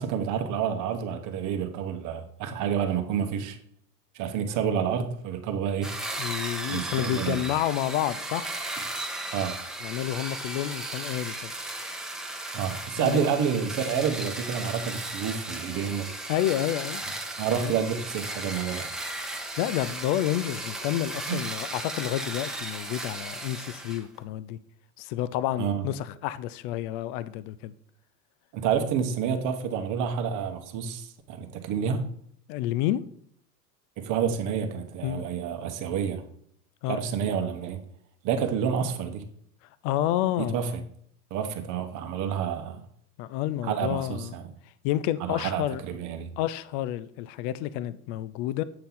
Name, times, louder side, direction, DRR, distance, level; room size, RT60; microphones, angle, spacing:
voice 1, 0.0-3.6 4.1-5.9 6.7-7.5 9.3-9.6 12.5-16.1 17.4-18.9 21.3-21.4 25.6-25.8 28.5-32.1 34.0-36.2 36.9-37.8 38.2-39.2 40.4-40.8 41.3-42.8 43.6-44.5 45.2-46.3, right 7 dB, 40° right, 1.2 m, -29 dB
sound 1, 5.8-24.0, right 1 dB, ahead, 1.3 m, -36 dB
voice 2, 6.2-8.5 9.8-11.5 13.0-13.3 16.3-17.0 17.5-17.8 19.6-24.6 25.0-27.7 32.5-33.0 35.0-35.2 36.8-37.0 39.8-40.6 43.2-44.3 44.8-45.8 46.4-48.6, left 13 dB, 35° left, 0.4 m, -29 dB
8.8 x 5.4 x 3.9 m
hypercardioid pair, 95°, 48 cm